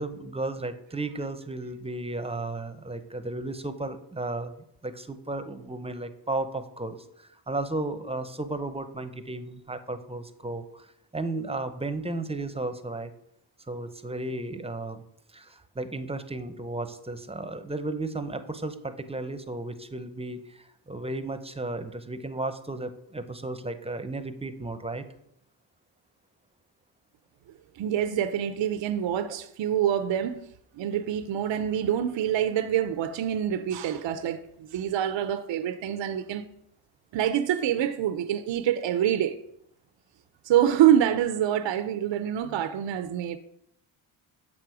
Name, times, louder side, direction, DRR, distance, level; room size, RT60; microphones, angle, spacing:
voice 1, 0.0-4.5 4.8-10.9 11.1-13.1 13.7-15.0 15.3-25.0, right 2 dB, 10° right, 0.8 m, -34 dB
voice 2, 27.8-30.4 30.8-36.4 37.1-39.4 40.4-43.4, right 10 dB, 65° right, 0.7 m, -26 dB
7.5 x 6.1 x 4.8 m
cardioid pair, 65°, 48 cm